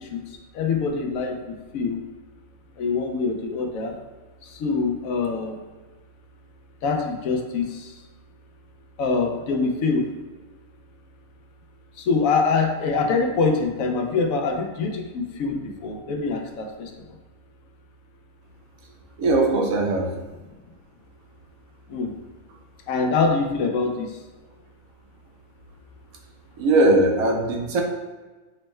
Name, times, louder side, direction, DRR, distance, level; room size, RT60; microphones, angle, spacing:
voice 1, 0.6-1.3 1.7-2.0 2.8-3.9 4.6-5.5 6.8-7.6 9.0-10.0 12.1-15.6 15.8-16.6 21.9-22.1 22.9-24.1, left 4 dB, 80° left, 3 dB, 1.0 m, -24 dB
voice 2, 19.2-20.1 26.6-27.8, right 2 dB, 85° right, 2 dB, 1.1 m, -20 dB
5.3 x 2.1 x 3.1 m, 1.3 s
omnidirectional pair, 1.4 m